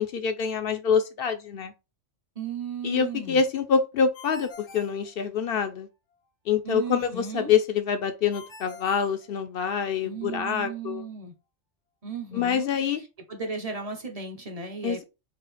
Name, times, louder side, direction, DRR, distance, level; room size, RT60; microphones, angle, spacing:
voice 1, 0.0-1.7 2.8-5.9 6.5-11.0 12.3-13.0 14.8-15.0, left 6 dB, 60° left, 0.7 m, -26 dB
voice 2, 2.4-3.4 6.6-7.5 10.0-11.3 12.0-12.7 13.3-15.0, right 5 dB, 35° right, 0.8 m, -35 dB
Ringtone, 4.1-5.8 8.3-9.9, left 4 dB, 80° left, 1.3 m, -47 dB
4.3 x 2.4 x 4.0 m
omnidirectional pair, 1.3 m